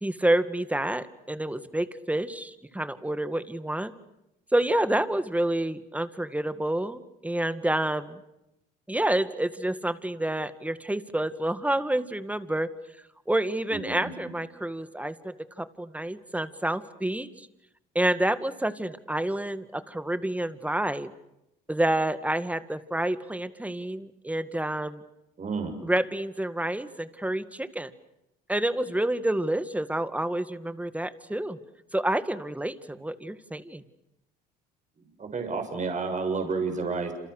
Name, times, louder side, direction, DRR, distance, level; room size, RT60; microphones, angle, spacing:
voice 1, 0.0-3.9 4.5-8.2 8.9-12.7 13.3-17.5 17.9-21.1 21.7-25.0 25.8-27.9 28.5-31.6 31.9-33.8, right 1 dB, 5° right, 12 dB, 2.1 m, -28 dB
voice 2, 13.7-14.1 25.4-25.8 35.2-37.1, right 4 dB, 40° right, 5 dB, 6.9 m, -30 dB
28.5 x 28.0 x 6.7 m, 0.87 s
supercardioid pair, 70°, 20 cm